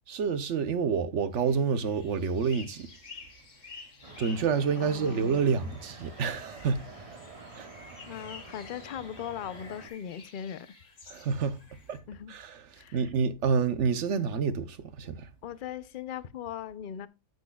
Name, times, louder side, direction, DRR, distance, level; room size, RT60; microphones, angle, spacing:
voice 1, 0.1-2.9 4.2-7.2 7.6-7.7 11.1-11.6 11.9-12.0 12.3-15.3, right 6 dB, 70° right, 1.1 m, -28 dB
sound 1, 1.3-12.0, left 4 dB, 85° left, 1.9 m, -51 dB
sound 2, 4.0-9.9, right 3 dB, 30° right, 0.9 m, -48 dB
voice 2, 4.8-5.5 8.1-10.7 12.1-12.4 12.8-13.0 15.4-17.1, left 9 dB, 55° left, 0.6 m, -39 dB
9.2 x 8.1 x 2.3 m
omnidirectional pair, 1.3 m